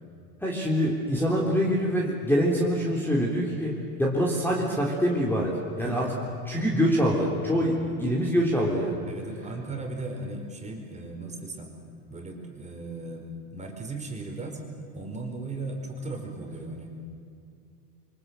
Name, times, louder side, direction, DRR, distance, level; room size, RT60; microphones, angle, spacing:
voice 1, 0.4-6.1 6.5-9.0, equal, 5° left, -3 dB, 3.7 m, -25 dB
voice 2, 7.6-8.0 9.0-11.8 12.1-14.6 14.9-16.9, right 2 dB, 15° right, 2 dB, 4.9 m, -37 dB
27.0 x 25.0 x 7.9 m, 2.4 s
supercardioid pair, 120°, 46 cm